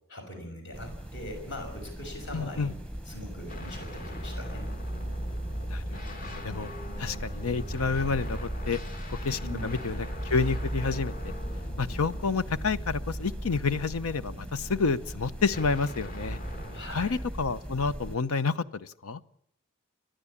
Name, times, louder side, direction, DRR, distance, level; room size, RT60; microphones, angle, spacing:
voice 1, 0.1-2.7 3.1-4.7 9.4-9.7 16.7-17.2, left 1 dB, 55° left, 4 dB, 6.1 m, -41 dB
sound 1, 0.7-18.2, equal, 5° left, 1.1 m, -40 dB
voice 2, 2.3-2.7 5.7-6.7 7.0-8.8 9.1-11.3 11.8-16.4 16.9-19.2, left 4 dB, 90° left, 14 dB, 0.8 m, -29 dB
sound 2, 3.5-13.7 15.5-16.8, equal, 40° left, 1.9 m, -37 dB
29.5 x 11.5 x 8.6 m, 0.71 s
head